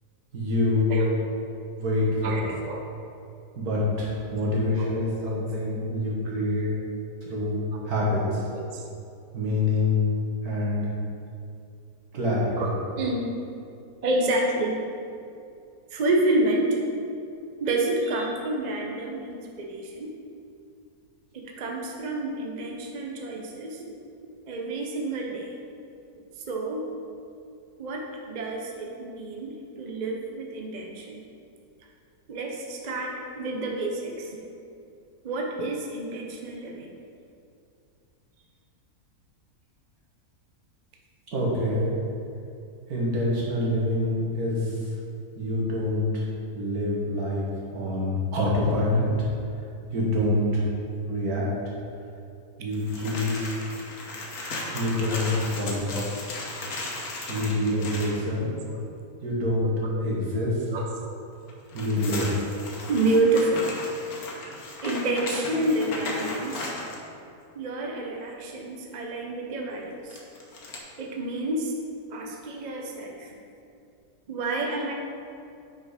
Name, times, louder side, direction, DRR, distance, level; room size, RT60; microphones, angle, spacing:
voice 1, 0.3-1.0 1.8-2.4 3.6-6.7 7.2-8.4 9.3-10.0 10.4-10.9 12.1-12.7 41.3-41.9 42.9-44.8 45.4-46.2 46.5-47.5 47.7-49.1 49.9-50.6 51.1-51.5 52.6-53.6 54.7-55.3 55.6-56.0 57.3-58.5 59.2-59.7 60.0-60.6 61.7-62.3, left 1 dB, 65° right, -5 dB, 1.9 m, -26 dB
voice 2, 2.2-2.8 4.8-5.4 7.7-7.9 8.5-8.9 12.6-13.3 14.0-14.8 15.9-16.8 17.6-20.1 21.3-23.8 24.5-25.5 26.5-26.9 27.8-31.2 32.3-34.4 35.2-37.0 41.8-41.9 55.1-55.3 55.9-56.2 57.7-57.9 58.7-58.9 59.6-60.1 60.7-60.9 62.2-62.3 62.9-63.7 64.8-66.7 67.5-70.2 71.0-71.7 72.1-73.4 74.3-74.9, right 2 dB, 45° right, 0 dB, 0.6 m, -29 dB
sound 1, 52.7-58.2 61.5-67.0 70.1-70.8, left 2 dB, 65° left, 1.4 m, -36 dB
5.8 x 5.1 x 4.9 m, 2.6 s
omnidirectional pair, 1.7 m